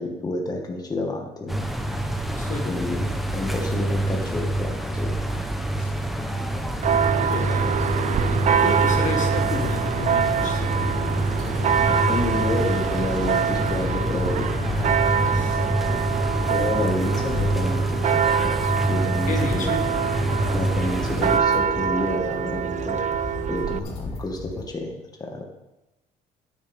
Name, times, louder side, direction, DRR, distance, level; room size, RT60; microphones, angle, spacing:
voice 1, 0.0-1.6 2.7-3.0 3.3-5.1 11.9-14.5 16.5-17.9 18.4-18.6 18.9-19.7 20.5-23.0 23.5-24.9 25.2-25.4, left 2 dB, 20° left, 1 dB, 1.9 m, -29 dB
sound 1, 1.5-21.4, right 1 dB, ahead, 1.2 m, -26 dB
Church bell, 6.8-23.8, right 8 dB, 45° right, 0.6 m, -25 dB
sound 2, 7.0-24.6, left 3 dB, 65° left, 3.4 m, -35 dB
voice 2, 7.3-7.9 8.6-11.1 14.7-15.7 19.3-19.8, left 3 dB, 45° left, 2 dB, 1.8 m, -32 dB
12.0 x 10.0 x 3.7 m, 0.96 s
cardioid pair, 110°, 17 cm